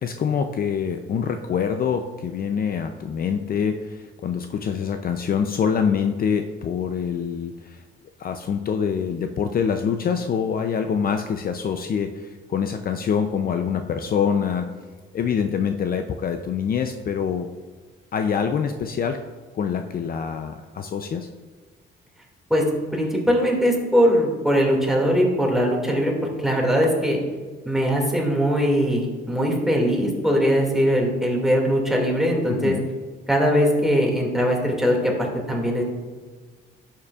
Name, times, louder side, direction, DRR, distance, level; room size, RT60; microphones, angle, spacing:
voice 1, 0.0-7.8 8.2-14.7 15.1-17.5 18.1-19.2 19.5-21.3 32.5-32.9, left 7 dB, 50° left, 6 dB, 0.5 m, -25 dB
voice 2, 22.9-27.2 27.7-32.8 33.3-35.8, equal, ahead, -1 dB, 2.1 m, -21 dB
11.0 x 7.3 x 2.4 m, 1.4 s
cardioid pair, 90°, 20 cm